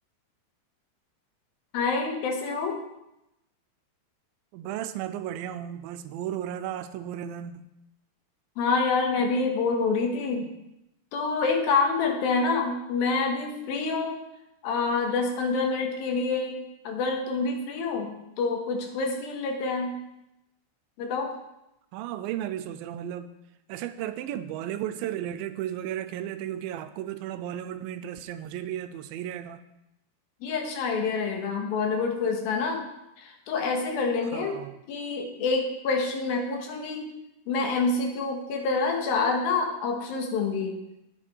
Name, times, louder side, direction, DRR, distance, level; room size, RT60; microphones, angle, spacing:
voice 1, 1.7-2.8 8.6-10.5 11.1-14.2 14.6-20.0 21.0-21.3 30.4-32.9 33.2-34.6 34.9-37.1 37.5-40.8, left 4 dB, 80° left, 2 dB, 3.2 m, -27 dB
voice 2, 4.5-7.7 21.9-23.3 23.7-29.6 34.3-34.8, right 11 dB, 80° right, 11 dB, 2.3 m, -34 dB
10.0 x 8.9 x 4.6 m, 0.89 s
omnidirectional pair, 4.3 m